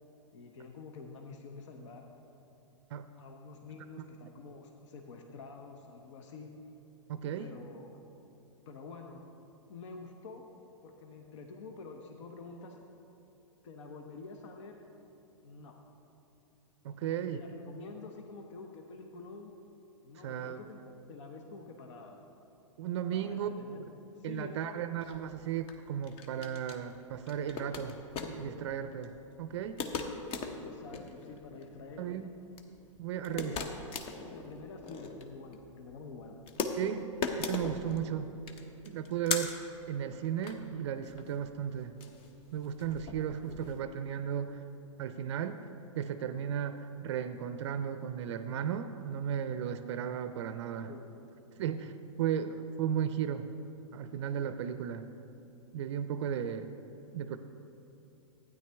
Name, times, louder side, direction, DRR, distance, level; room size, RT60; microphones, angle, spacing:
voice 1, 0.3-2.1 3.2-6.5 7.4-8.0 8.7-9.2 9.7-10.5 10.8-12.8 13.6-14.8 15.4-15.7 17.0-19.5 20.0-22.2 23.1-24.8 30.6-32.3 33.3-33.8 34.3-36.4 50.7-51.2, left 4 dB, 65° left, 3 dB, 0.9 m, -48 dB
voice 2, 7.1-7.5 16.8-17.4 20.2-20.6 22.8-23.5 24.2-28.0 28.3-29.1 29.4-29.8 32.0-32.3 33.0-33.6 36.8-38.3 38.9-39.6 39.9-41.9 42.5-44.6 45.0-45.6 45.9-50.9 51.6-53.5 53.9-55.1 55.7-56.7 57.1-57.4, right 9 dB, 60° right, 10 dB, 0.5 m, -35 dB
sound 1, 25.0-43.8, left 4 dB, 35° left, 0.8 m, -40 dB
12.0 x 9.3 x 3.4 m, 3.0 s
hypercardioid pair, 115°, 17 cm